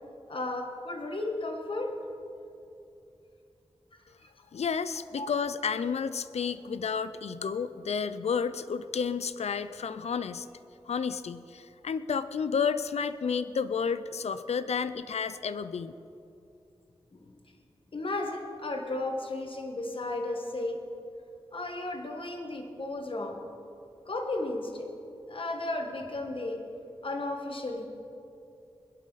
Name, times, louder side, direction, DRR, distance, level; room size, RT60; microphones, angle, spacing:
voice 1, 0.3-1.9 4.2-4.3 5.2-5.3 17.1-17.4 17.9-20.8 21.5-23.4 24.0-24.9 25.3-26.6 27.0-27.9, left 2 dB, 55° left, 3 dB, 1.5 m, -34 dB
voice 2, 4.5-10.5 10.9-15.9, left 6 dB, 90° left, 13 dB, 0.4 m, -31 dB
21.0 x 11.5 x 4.1 m, 2.7 s
wide cardioid pair, 80°, 11 cm